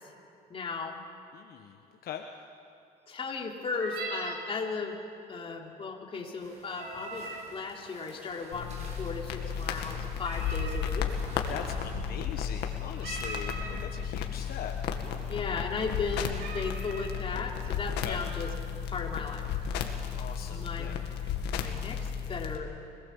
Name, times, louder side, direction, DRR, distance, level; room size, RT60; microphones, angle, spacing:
voice 1, 0.5-0.9 3.1-5.0 5.3-11.1 15.3-18.5 18.9-19.4 20.5-21.0 21.6-22.7, left 4 dB, 35° left, 0 dB, 3.2 m, -36 dB
voice 2, 1.3-2.3 11.5-14.7 18.0-18.2 20.2-21.0, left 9 dB, 65° left, 4 dB, 1.2 m, -41 dB
sound 1, 3.6-4.4 6.6-7.5 10.2-10.8 13.0-13.8 14.6-14.7 15.1-15.4 15.9-16.0 16.4-17.1, right 3 dB, 75° right, 5.7 m, -40 dB
sound 2, 6.4-12.0, right 1 dB, 40° right, 7.5 m, -51 dB
sound 3, 8.5-22.6, left 7 dB, 80° left, 2.0 m, -34 dB
25.5 x 19.5 x 7.2 m, 2.8 s
cardioid pair, 110°, 17 cm